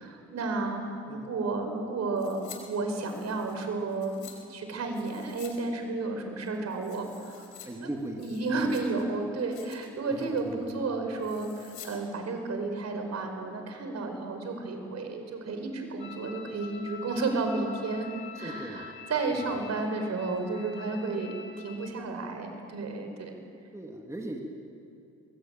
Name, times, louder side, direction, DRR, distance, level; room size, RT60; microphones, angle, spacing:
voice 1, 0.0-4.2 4.5-7.4 7.8-7.9 8.2-18.1 18.3-23.3, right 3 dB, 60° right, 5 dB, 5.1 m, -32 dB
sound 1, 2.2-2.6 2.9-4.4 4.9-5.6 5.8-5.9 6.4-7.7 8.0-9.0 9.4-9.9 10.2-10.5 11.2-11.9 12.2-12.3, left 9 dB, 80° left, 5.0 m, -50 dB
voice 2, 7.6-8.8 10.1-10.7 18.3-18.9 19.3-19.5 23.7-24.4, right 1 dB, 10° right, 1 dB, 2.6 m, -39 dB
sound 2, 16.0-21.9, left 7 dB, 35° left, 3.0 m, -46 dB
22.5 x 22.0 x 9.1 m, 2.6 s
cardioid pair, 90°, 30 cm